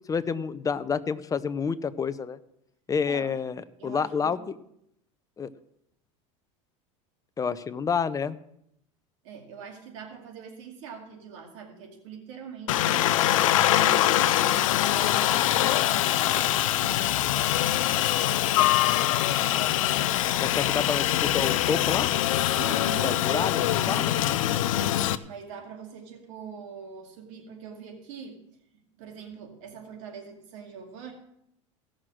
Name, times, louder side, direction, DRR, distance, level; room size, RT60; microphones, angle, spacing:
voice 1, 0.1-2.4 2.9-3.6 3.8-4.6 5.4-5.5 7.4-8.4 20.4-22.1 23.0-24.1, left 6 dB, 20° left, 13 dB, 0.7 m, -29 dB
voice 2, 3.8-4.5 9.2-13.2 13.5-17.0 22.6-24.9 25.2-28.4 28.7-31.1, right 7 dB, 75° right, 2 dB, 2.4 m, -43 dB
Aircraft, 12.7-25.1, left 13 dB, 85° left, 0.6 m, -23 dB
16.5 x 6.4 x 6.2 m, 0.77 s
supercardioid pair, 105°, 17 cm